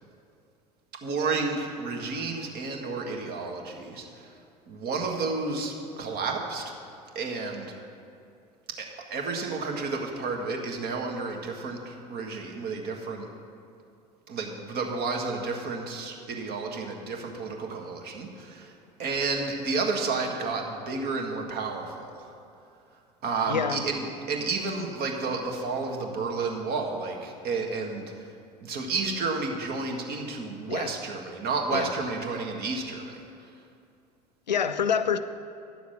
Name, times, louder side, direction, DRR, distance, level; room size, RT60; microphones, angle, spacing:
voice 1, 1.0-4.3 4.7-6.6 7.1-7.7 8.8-13.3 14.3-18.7 19.0-22.3 23.2-28.3 28.6-33.2, right 4 dB, 50° right, 2 dB, 1.6 m, -31 dB
voice 2, 23.5-23.8 30.7-30.9 31.7-31.9 34.5-35.2, left 7 dB, 85° left, 11 dB, 0.4 m, -26 dB
10.5 x 7.0 x 6.4 m, 2.5 s
figure-of-eight pair, 65°, 21 cm